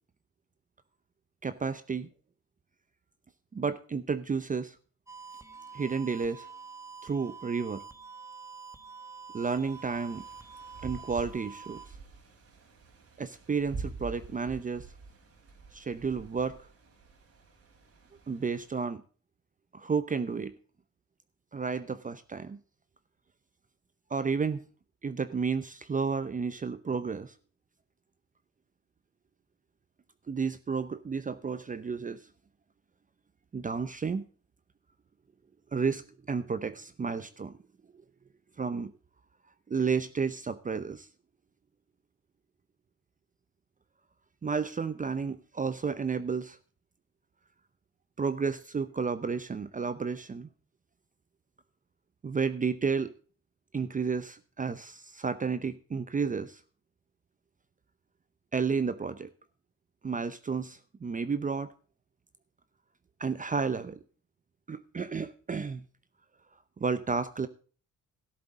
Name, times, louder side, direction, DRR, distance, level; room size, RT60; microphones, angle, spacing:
voice 1, 1.4-2.1 3.5-4.8 5.7-6.5 7.0-7.8 9.3-10.2 10.8-11.8 13.2-14.8 15.7-16.7 18.3-19.0 19.7-20.6 21.5-22.6 24.1-24.6 25.0-27.3 30.3-32.2 33.5-34.2 35.7-36.0 36.3-37.6 38.6-38.9 39.7-41.1 44.4-46.6 48.2-50.5 52.2-53.1 53.7-56.6 58.5-59.3 60.0-61.7 63.2-64.0 64.7-65.8 66.8-67.5, right 5 dB, 25° right, 13 dB, 0.7 m, -31 dB
sound 1, 5.1-11.9, right 5 dB, 10° right, 1.5 m, -47 dB
sound 2, 9.4-18.8, right 4 dB, 55° right, 3.6 m, -47 dB
13.0 x 11.0 x 3.7 m, 0.40 s
cardioid pair, 90°, 30 cm